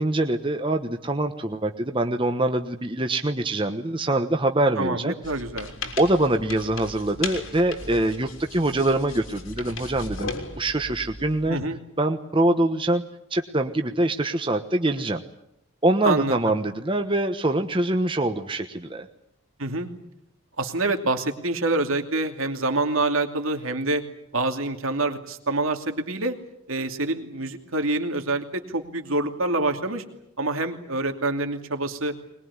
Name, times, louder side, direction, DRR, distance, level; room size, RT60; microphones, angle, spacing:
voice 1, 0.0-5.1 6.0-11.6 12.0-13.0 13.3-15.2 15.8-19.1, right 1 dB, 25° right, 6 dB, 1.2 m, -24 dB
voice 2, 4.8-5.7 11.5-11.8 16.0-16.4 19.6-19.9 20.6-24.0 24.3-26.4 26.7-30.0 30.4-32.1, right 2 dB, 80° right, 5 dB, 2.7 m, -26 dB
sound 1, 5.2-11.6, left 3 dB, 75° left, 3.6 m, -37 dB
21.5 x 21.5 x 9.7 m, 0.79 s
head